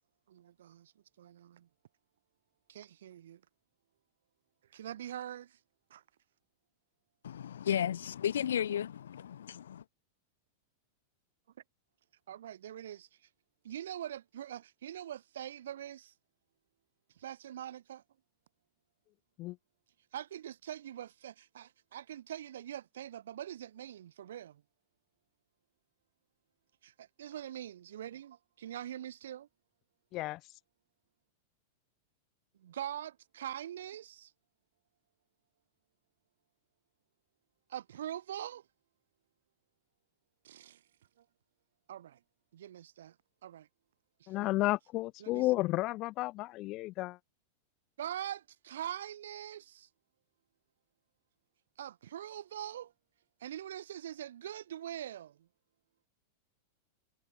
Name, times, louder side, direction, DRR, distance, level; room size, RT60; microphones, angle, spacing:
voice 1, 0.3-0.9 1.2-1.7 2.7-3.4 4.7-5.6 5.9-6.0 12.3-13.3 13.6-16.1 17.2-18.0 20.1-24.6 26.8-29.5 32.5-34.3 37.7-38.7 40.4-40.8 41.2-41.3 41.9-42.2 42.5-43.2 43.4-43.7 44.2-44.5 45.2-45.6 48.0-49.9 51.8-52.9 53.4-55.5, right 11 dB, 75° right, 5.3 m, -43 dB
voice 2, 7.2-8.9 9.3-9.8, left 9 dB, 80° left, 0.4 m, -33 dB
voice 3, 44.3-47.2, left 19 dB, 45° left, 0.8 m, -32 dB
hypercardioid pair, 110°, 0 cm